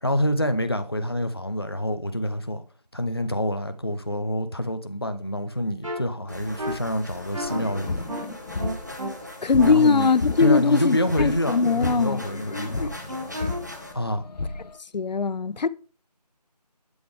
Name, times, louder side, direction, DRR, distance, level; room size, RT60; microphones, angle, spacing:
voice 1, 0.0-2.6 2.9-8.0 9.6-10.1 10.4-12.9 13.9-14.3, equal, 35° left, 0.4 m, -27 dB
sound 1, 5.8-6.0 6.6-6.7 7.3-7.6 8.1-8.2 8.6-9.1 9.6-11.8 13.1-13.6, right 1 dB, 50° right, 1.8 m, -33 dB
sound 2, 6.3-13.9, left 1 dB, 25° right, 0.6 m, -40 dB
sound 3, 7.5-9.8 10.1-14.7, left 3 dB, 70° left, 0.9 m, -32 dB
voice 2, 9.4-12.2 14.9-15.7, left 5 dB, 90° left, 0.5 m, -20 dB
7.8 x 5.0 x 3.4 m
figure-of-eight pair, 180°, 21 cm